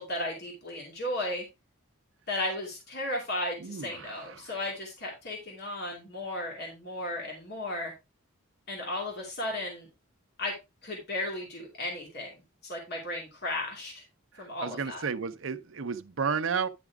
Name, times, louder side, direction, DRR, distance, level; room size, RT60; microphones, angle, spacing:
voice 1, 0.0-1.5 2.3-7.9 8.7-9.9 10.4-10.5 10.8-12.3 12.6-14.0 14.4-15.0, left 1 dB, 55° left, 2.6 m, -35 dB
voice 2, 3.6-4.6 14.3-16.7, right 5 dB, 70° right, 0.7 m, -33 dB
10.0 x 6.0 x 3.5 m
head